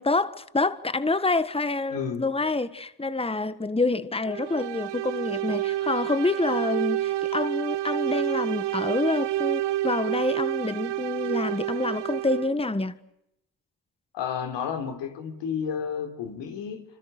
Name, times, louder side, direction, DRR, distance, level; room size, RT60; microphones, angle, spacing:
voice 1, 0.0-13.0, left 3 dB, 15° left, 1.6 m, -27 dB
voice 2, 1.9-2.2 14.1-16.8, left 7 dB, 90° left, 3.9 m, -31 dB
sound 1, 4.3-12.6, right 14 dB, 75° right, 1.0 m, -29 dB
27.0 x 26.0 x 6.7 m
supercardioid pair, 55°, 42 cm